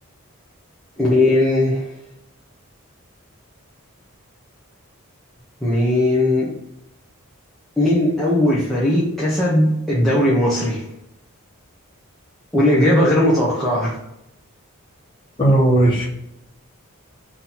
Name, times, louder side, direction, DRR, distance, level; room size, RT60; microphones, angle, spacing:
voice 1, 1.0-1.9 5.6-6.5 7.8-10.8 12.5-13.9, left 1 dB, ahead, -9 dB, 0.8 m, -18 dB
voice 2, 15.4-16.1, right 1 dB, 20° left, -6 dB, 1.3 m, -15 dB
4.0 x 2.8 x 4.1 m, 0.84 s
head